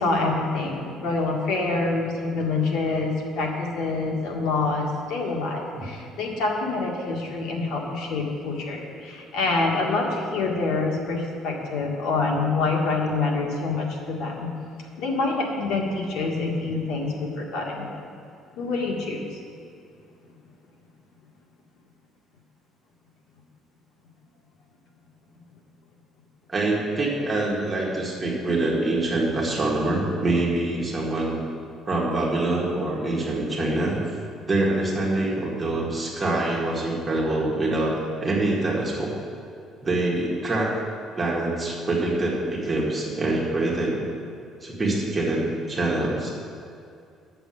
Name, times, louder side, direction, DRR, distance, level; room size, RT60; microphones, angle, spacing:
voice 1, 0.0-14.5 15.0-17.9 18.5-19.4, left 3 dB, 80° left, 0 dB, 1.9 m, -26 dB
voice 2, 26.5-31.4 31.9-34.0 34.5-38.0 38.2-39.1 39.8-44.0 44.6-46.3, right 2 dB, 15° right, -4 dB, 2.0 m, -25 dB
9.8 x 6.8 x 7.8 m, 2.4 s
cardioid pair, 160°, 0 cm